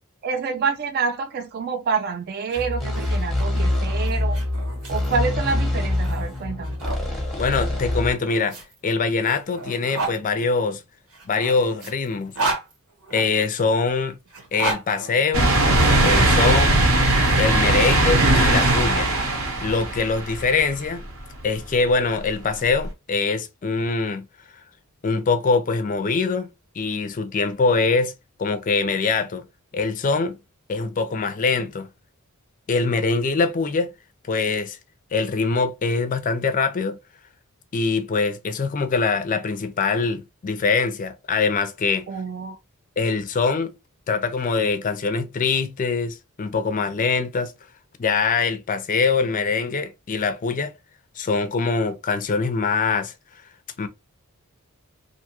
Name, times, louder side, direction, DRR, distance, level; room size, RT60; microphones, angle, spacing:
voice 1, 0.2-4.4 4.9-6.8 42.1-42.6, right 5 dB, 45° right, 0.3 m, -27 dB
sound 1, 2.4-7.0 8.0-10.2 11.1-13.5 14.3-15.9, right 3 dB, 85° right, 1.1 m, -33 dB
sound 2, 2.6-8.1, left 1 dB, ahead, 0.7 m, -25 dB
voice 2, 7.4-8.6 8.8-10.8 11.3-12.3 13.1-14.1 14.5-15.5 16.0-16.8 17.4-19.1 19.6-21.0 21.4-24.3 25.0-26.5 26.8-28.1 28.4-29.4 29.7-30.4 30.7-31.9 32.7-33.9 34.3-34.8 35.1-37.0 37.7-42.1 43.0-43.7 44.1-47.5 48.0-50.7 51.2-53.1 53.8-53.9, left 4 dB, 35° left, 0.4 m, -23 dB
sound 3, 15.3-20.9 21.4-21.5 22.8-22.9, right 2 dB, 65° right, 0.8 m, -19 dB
2.6 x 2.3 x 2.9 m
head